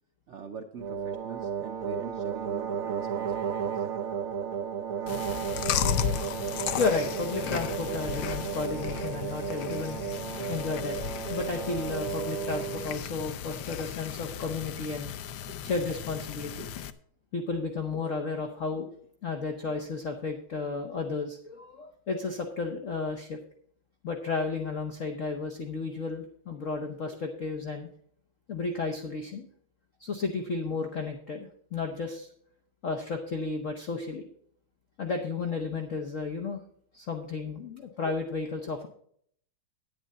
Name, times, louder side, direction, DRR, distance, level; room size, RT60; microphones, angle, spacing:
voice 1, 0.3-4.0 15.5-15.7 16.6-16.7, right 4 dB, 80° right, 6 dB, 0.6 m, -44 dB
sound 1, 0.8-13.0, right 7 dB, 60° right, 0.9 m, -34 dB
Chewing mastication, 5.1-16.9, left 9 dB, 70° left, 1.3 m, -35 dB
voice 2, 6.8-10.0 10.5-11.0 11.3-15.1 15.6-16.7 17.3-18.9 19.2-23.4 24.0-27.9 28.5-29.5 30.0-32.3 32.8-34.2 35.0-36.6 36.9-38.9, left 4 dB, 45° left, 4 dB, 1.2 m, -33 dB
10.0 x 9.8 x 4.2 m, 0.63 s
omnidirectional pair, 2.2 m